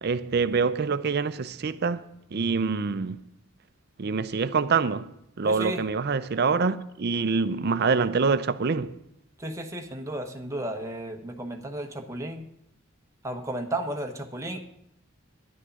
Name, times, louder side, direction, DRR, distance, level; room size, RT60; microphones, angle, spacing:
voice 1, 0.0-2.0 2.3-3.2 4.0-5.1 5.4-8.9, right 5 dB, 50° right, 0.5 m, -25 dB
voice 2, 5.4-5.8 9.4-12.5 13.2-14.6, right 1 dB, 15° right, 1.1 m, -33 dB
11.0 x 6.5 x 9.0 m
head